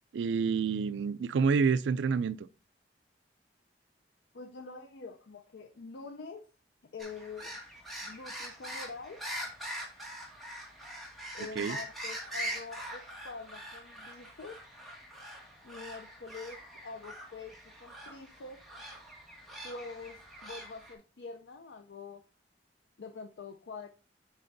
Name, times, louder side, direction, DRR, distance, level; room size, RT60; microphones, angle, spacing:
voice 1, 0.1-2.5 11.6-11.8, right 5 dB, 90° right, 0.4 m, -28 dB
voice 2, 4.3-6.5 6.8-7.6 8.0-9.3 11.3-14.6 15.6-18.6 19.6-22.2 23.0-23.9, left 4 dB, 85° left, 0.5 m, -45 dB
sound 1, 7.0-20.9, equal, ahead, 2.0 m, -43 dB
10.5 x 4.3 x 2.6 m
head